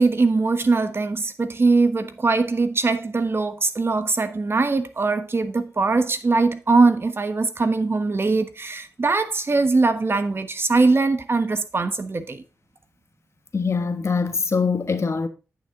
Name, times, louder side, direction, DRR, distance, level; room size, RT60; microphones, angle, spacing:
voice 1, 0.0-12.4, right 3 dB, 45° right, 1.2 m, -21 dB
voice 2, 13.5-15.3, left 5 dB, 55° left, 1.3 m, -23 dB
9.6 x 6.1 x 3.8 m
cardioid pair, 50°, 6 cm